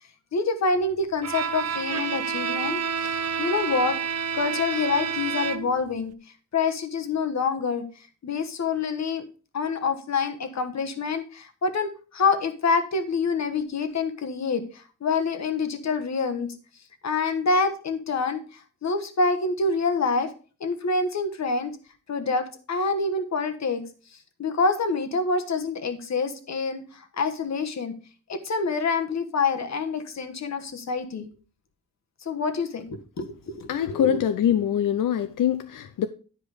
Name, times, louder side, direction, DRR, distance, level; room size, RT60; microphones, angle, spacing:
voice 1, 0.3-4.0 4.3-6.1 6.5-7.8 8.2-9.2 9.5-16.5 17.0-20.3 20.6-21.7 22.1-23.8 24.4-27.9 28.3-31.3 32.2-34.2, left 4 dB, 55° left, 1.2 m, -26 dB
Bowed string instrument, 1.2-5.9, right 6 dB, 55° right, 0.6 m, -29 dB
voice 2, 33.7-36.1, left 9 dB, 85° left, 0.6 m, -24 dB
10.5 x 5.0 x 4.8 m
wide cardioid pair, 120°, 31 cm